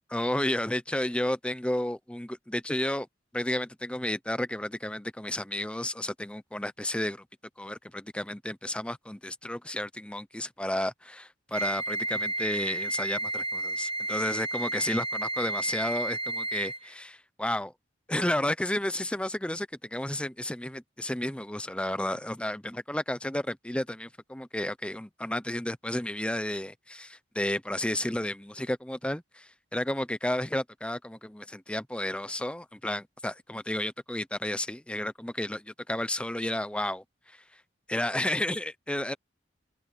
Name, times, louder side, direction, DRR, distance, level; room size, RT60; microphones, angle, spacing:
voice 1, 0.1-3.1 3.3-7.2 7.6-17.7 18.1-37.4 37.9-39.1, left 1 dB, 5° left, 0.7 m, -32 dB
Wind instrument woodwind instrument, 11.5-16.9, right 2 dB, 30° right, 0.9 m, -32 dB
open air
head